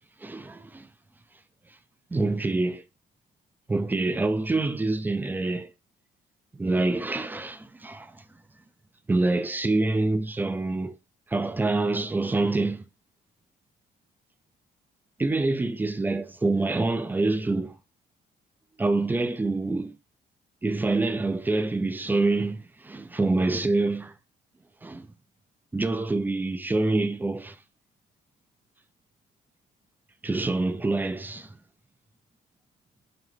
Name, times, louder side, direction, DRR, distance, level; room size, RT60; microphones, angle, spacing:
voice 1, 0.2-0.9 2.1-2.8 3.7-5.7 6.5-8.2 9.1-10.9 11.3-12.8 15.2-17.7 18.8-19.9 20.6-24.1 24.8-25.1 25.7-27.6 30.2-31.5, right 2 dB, 10° right, 0.4 m, -26 dB
5.8 x 2.0 x 3.3 m
cardioid pair, 110°, 17 cm